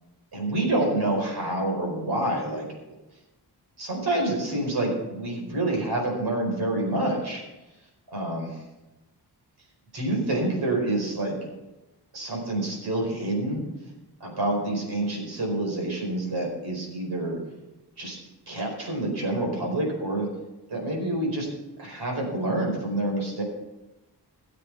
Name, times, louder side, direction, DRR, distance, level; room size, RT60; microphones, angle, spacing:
voice 1, 0.3-2.7 3.8-7.4 8.1-8.5 9.9-11.4 12.1-13.7 14.2-17.4 18.0-18.2 18.5-20.3 20.7-21.5 21.8-23.4, right 1 dB, 65° right, 0 dB, 4.8 m, -27 dB
18.5 x 7.8 x 5.8 m, 1.0 s
wide cardioid pair, 175°, 41 cm